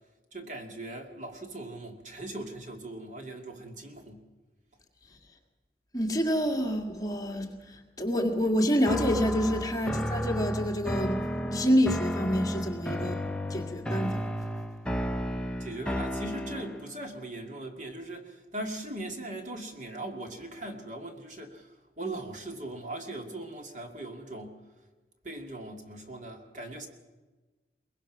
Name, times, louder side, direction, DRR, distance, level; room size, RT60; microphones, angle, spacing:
voice 1, 0.3-4.2 15.6-24.6 25.2-26.9, right 1 dB, 45° right, 4 dB, 2.2 m, -40 dB
voice 2, 5.9-13.2 13.5-14.2, equal, 20° left, 3 dB, 1.9 m, -28 dB
sound 1, 8.8-16.9, equal, 5° left, 0.7 m, -33 dB
22.5 x 21.0 x 6.1 m, 1.3 s
head